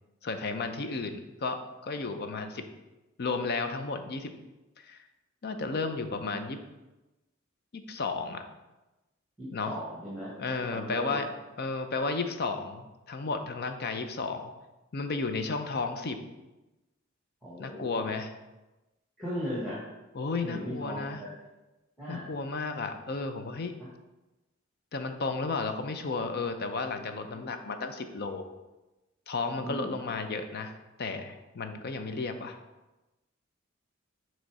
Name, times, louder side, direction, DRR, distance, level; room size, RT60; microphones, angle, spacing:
voice 1, 0.2-2.6 3.2-4.3 4.8-5.0 5.4-6.6 7.7-8.4 9.5-9.7 10.4-11.3 11.6-14.5 14.9-16.2 17.6-18.3 20.1-21.2 22.1-23.8 24.9-28.5 29.3-30.7 31.0-32.6, left 4 dB, 50° left, 7 dB, 0.5 m, -33 dB
voice 2, 9.4-10.3 10.7-11.2 17.4-18.1 19.2-19.8 20.4-21.3 22.0-22.3 23.8-23.9 27.4-27.5 29.6-30.0, equal, ahead, -6 dB, 1.3 m, -37 dB
6.5 x 3.1 x 4.7 m, 1.1 s
head